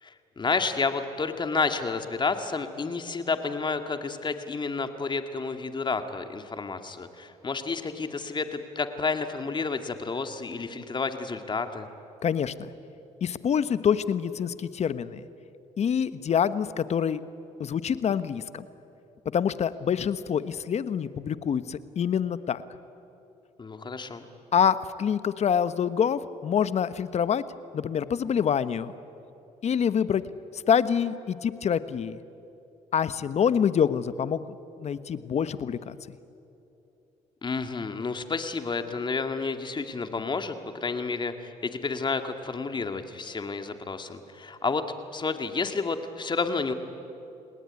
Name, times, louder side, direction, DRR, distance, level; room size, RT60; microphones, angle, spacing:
voice 1, 0.0-11.9 23.6-24.3 37.4-40.6 40.8-44.8 45.1-46.7, left 4 dB, 35° left, 7 dB, 2.3 m, -30 dB
voice 2, 12.2-12.7 13.2-15.2 15.8-17.2 17.6-18.7 19.3-22.6 24.5-27.4 27.7-28.9 29.6-30.2 30.5-32.2 32.9-34.4 34.8-36.2, left 8 dB, 50° left, 14 dB, 1.2 m, -26 dB
30.0 x 19.0 x 9.8 m, 2.8 s
supercardioid pair, 80°, 14 cm